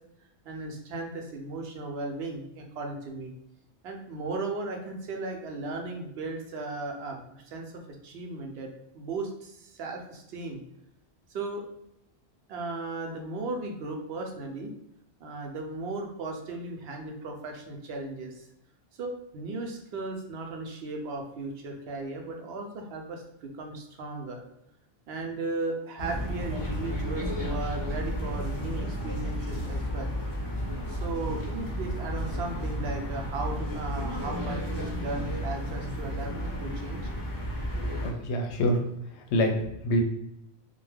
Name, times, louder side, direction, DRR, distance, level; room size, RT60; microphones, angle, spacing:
voice 1, 0.4-3.3 3.8-10.6 11.3-11.6 12.5-14.7 15.2-18.5 19.0-24.4 25.1-30.1 30.9-37.1, right 3 dB, 70° right, 2 dB, 0.8 m, -36 dB
sound 1, 26.0-38.1, equal, 25° left, 0.6 m, -32 dB
voice 2, 37.7-38.8 39.2-40.0, equal, 85° left, 3 dB, 0.9 m, -27 dB
2.5 x 2.2 x 3.2 m, 0.82 s
omnidirectional pair, 1.1 m